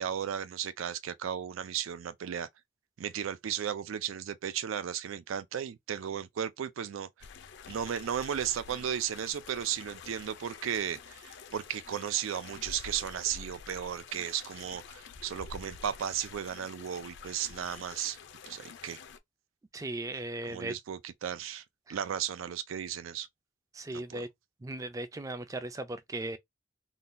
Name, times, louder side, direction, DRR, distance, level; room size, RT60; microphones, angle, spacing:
voice 1, 0.0-2.5 3.0-7.1 7.7-18.2 18.5-19.0 19.8-19.9 20.5-21.6 21.9-23.3 23.9-24.2, right 9 dB, 85° right, 0.4 m, -35 dB
sound 1, 7.2-19.2, left 5 dB, 60° left, 0.4 m, -48 dB
voice 2, 19.7-20.7 21.9-22.0 23.7-24.3 24.6-26.4, right 2 dB, 15° right, 0.3 m, -37 dB
3.7 x 2.2 x 2.5 m
head